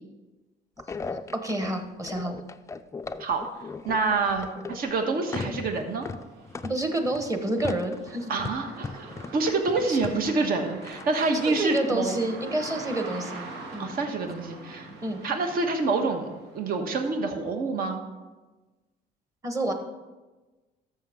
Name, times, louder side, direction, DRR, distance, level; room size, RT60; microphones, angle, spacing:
sound 1, 0.8-4.9 5.3-11.8, left 4 dB, 15° left, 0.4 m, -38 dB
voice 1, 1.4-2.4 6.6-8.3 9.9-10.0 11.3-13.9 15.0-15.2 19.4-19.7, right 2 dB, 20° right, 5 dB, 1.2 m, -29 dB
voice 2, 3.8-6.1 8.3-12.2 13.8-14.9 15.2-16.3 16.5-18.0, right 3 dB, 60° right, 5 dB, 1.4 m, -27 dB
sound 2, 3.8-3.9 4.3-17.2, right 3 dB, 85° right, 1.4 m, -44 dB
13.0 x 6.9 x 3.6 m, 1.2 s
cardioid pair, 110°, 17 cm